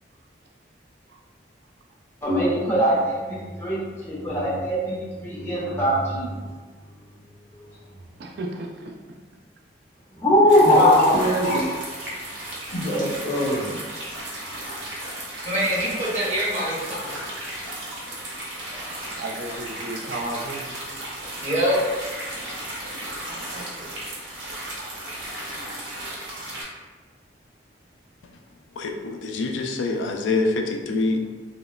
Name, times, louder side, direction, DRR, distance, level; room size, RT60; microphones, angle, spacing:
voice 1, 2.2-6.5 10.2-11.1, left 1 dB, 15° left, -8 dB, 0.5 m, -20 dB
voice 2, 7.8-9.2 15.1-15.5 17.7-18.5 19.2-20.8 22.5-23.9, right 2 dB, 60° right, 2 dB, 0.3 m, -37 dB
sound 1, 10.5-26.6, right 1 dB, 75° right, 0.8 m, -35 dB
voice 3, 10.6-11.7 12.7-13.8, right 1 dB, 50° left, -5 dB, 0.7 m, -25 dB
voice 4, 15.4-17.2 21.4-21.8, equal, 40° right, -7 dB, 0.8 m, -24 dB
voice 5, 28.8-31.2, left 3 dB, 80° left, 3 dB, 0.3 m, -25 dB
2.9 x 2.0 x 2.3 m, 1.3 s
head